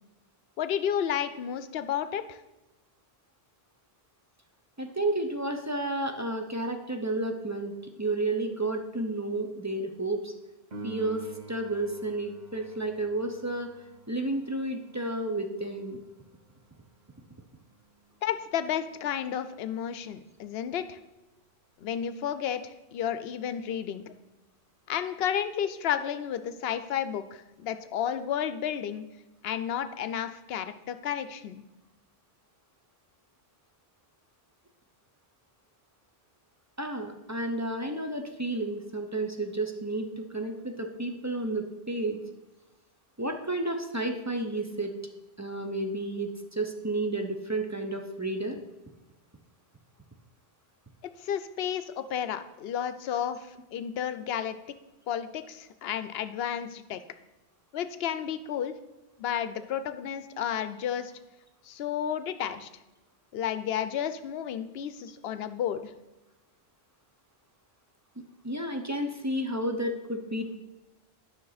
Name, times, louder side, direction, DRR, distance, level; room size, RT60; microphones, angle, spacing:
voice 1, 0.6-2.4 18.2-21.0 21.8-24.1 24.9-29.1 29.4-31.6 51.0-54.6 55.1-57.0 57.7-58.7 59.2-61.1 61.6-62.7 63.3-65.9, left 9 dB, 75° left, 11 dB, 0.8 m, -32 dB
voice 2, 4.8-7.7 8.0-10.3 10.8-13.7 14.1-16.0 36.8-42.2 43.2-44.9 45.4-46.3 46.6-48.6 68.4-70.6, right 2 dB, 20° right, 4 dB, 0.5 m, -31 dB
Piano, 10.7-21.1 28.7-28.8, right 4 dB, 45° right, 1.2 m, -50 dB
9.4 x 6.0 x 4.0 m, 1.0 s
omnidirectional pair, 1.1 m